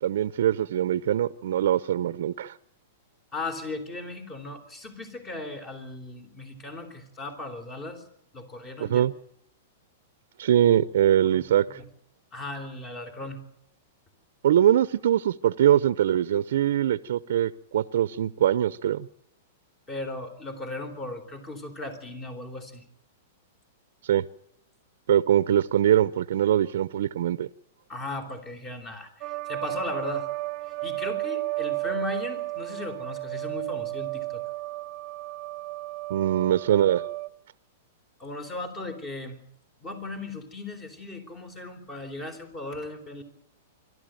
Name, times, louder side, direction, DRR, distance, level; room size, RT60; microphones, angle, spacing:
voice 1, 0.0-2.5 8.8-9.1 10.4-11.8 14.4-19.1 24.1-24.2 25.1-27.5 36.1-37.0, right 11 dB, 70° right, 0.7 m, -22 dB
voice 2, 3.3-8.0 8.3-9.0 11.2-11.5 11.8-11.9 12.3-13.4 19.9-22.8 27.9-30.3 30.8-34.4 38.2-39.4 39.8-43.2, left 2 dB, 20° left, 3.9 m, -37 dB
sound 1, 29.2-37.3, right 21 dB, 40° right, 0.9 m, -33 dB
26.5 x 12.5 x 9.1 m
hypercardioid pair, 135°, 0 cm